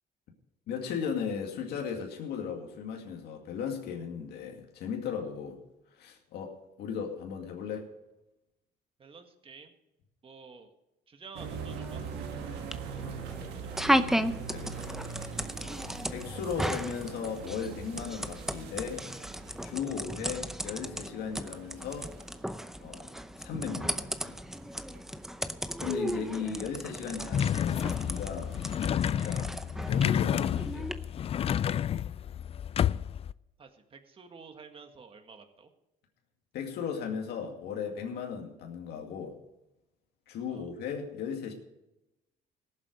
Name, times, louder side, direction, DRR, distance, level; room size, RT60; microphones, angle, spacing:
voice 1, 0.7-5.6 5.9-7.9 13.0-13.2 14.5-15.0 16.1-19.1 19.6-22.1 22.8-23.1 23.4-24.4 25.8-28.6 29.0-29.5 29.9-30.9 36.5-39.4 40.3-41.5, left 6 dB, 75° left, 2 dB, 2.2 m, -36 dB
voice 2, 9.0-9.7 10.2-10.7 11.1-12.0 12.7-13.8 33.6-35.7 40.5-40.7, right 5 dB, 35° right, 5 dB, 1.8 m, -51 dB
sound 1, 11.3-25.1 25.9-26.0 26.6-27.2 27.5-27.6 29.4-29.5, right 6 dB, 85° right, 1.7 m, -43 dB
sound 2, 11.4-30.9, equal, ahead, 0.7 m, -35 dB
sound 3, 27.3-33.3, left 9 dB, 35° left, 0.4 m, -30 dB
18.0 x 7.6 x 5.1 m, 0.93 s
cardioid pair, 110°, 17 cm